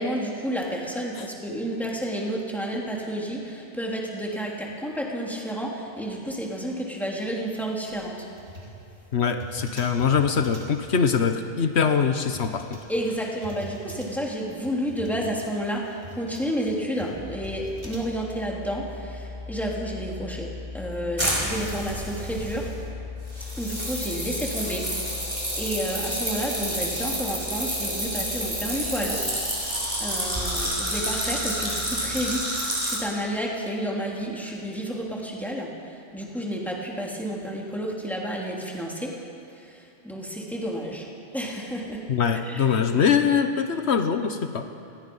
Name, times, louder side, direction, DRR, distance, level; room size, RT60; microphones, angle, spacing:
voice 1, 0.0-8.2 12.9-20.5 20.7-22.7 23.6-25.2 25.6-29.3 30.0-35.7 36.1-39.1 39.6-41.1 41.3-42.0 42.5-42.6, equal, ahead, -3 dB, 3.5 m, -30 dB
sound 1, 7.9-18.4, equal, 55° right, 3.8 m, -44 dB
voice 2, 9.1-12.8 42.1-44.7, left 6 dB, 80° left, 7 dB, 1.3 m, -23 dB
sound 2, 17.1-32.4, left 2 dB, 20° left, 3.2 m, -40 dB
sound 3, 21.2-22.8 23.3-33.0, equal, 30° right, 5.8 m, -29 dB
28.0 x 20.5 x 5.6 m, 2.8 s
omnidirectional pair, 1.1 m